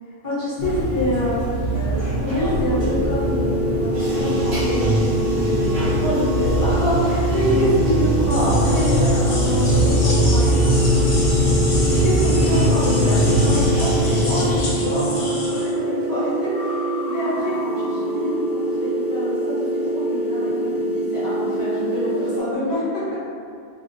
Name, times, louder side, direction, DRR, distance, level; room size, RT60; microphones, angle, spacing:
voice 1, 0.2-17.5 17.9-18.3 18.6-22.8, left 1 dB, 20° left, -12 dB, 0.7 m, -26 dB
Bathtub (filling or washing), 0.6-14.6, equal, 65° right, 1.0 m, -21 dB
sound 1, 2.7-22.4, right 2 dB, 25° right, 0.5 m, -25 dB
sound 2, 8.3-15.7, left 1 dB, 75° left, 0.3 m, -31 dB
2.4 x 2.0 x 2.6 m, 2.4 s
omnidirectional pair, 1.3 m